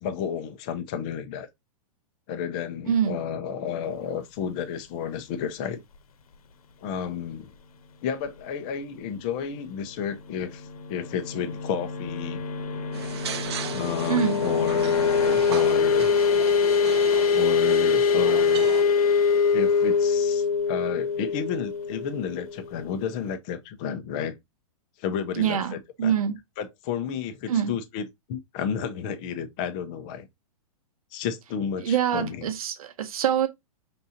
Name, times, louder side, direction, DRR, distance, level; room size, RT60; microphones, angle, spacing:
voice 1, 0.0-1.5 2.3-5.8 6.8-7.5 8.0-12.4 13.7-16.1 17.3-18.7 19.5-24.4 25.0-26.1 26.6-30.3 31.1-32.5, left 7 dB, 15° left, 0.3 m, -32 dB
sound 1, 10.4-22.9, left 5 dB, 75° left, 0.8 m, -24 dB
sound 2, 12.9-18.8, right 9 dB, 45° right, 0.6 m, -37 dB
voice 2, 25.3-26.4 27.5-27.7 31.8-33.5, right 9 dB, 70° right, 0.9 m, -25 dB
5.4 x 3.6 x 2.7 m
hypercardioid pair, 175°, 19 cm